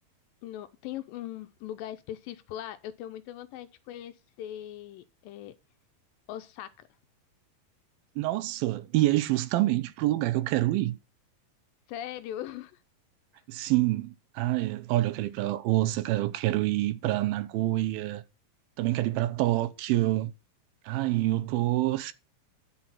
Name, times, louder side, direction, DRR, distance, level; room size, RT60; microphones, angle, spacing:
voice 1, 0.4-5.5 6.3-6.9 11.9-12.8, left 12 dB, 80° left, 2.2 m, -40 dB
voice 2, 8.2-11.0 13.5-18.2 18.8-20.3 20.9-22.1, right 16 dB, 80° right, 2.5 m, -27 dB
10.5 x 6.2 x 5.6 m
omnidirectional pair, 4.4 m